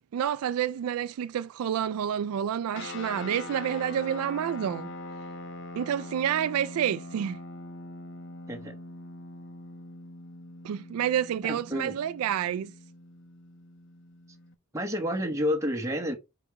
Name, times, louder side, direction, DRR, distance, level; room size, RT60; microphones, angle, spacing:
voice 1, 0.0-4.9 5.8-7.4 10.6-12.7, right 9 dB, 90° right, 0.3 m, -29 dB
sound 1, 2.7-14.5, left 2 dB, 60° left, 0.8 m, -43 dB
voice 2, 11.4-12.0 14.7-16.2, equal, 15° right, 1.0 m, -30 dB
5.0 x 4.8 x 4.7 m
head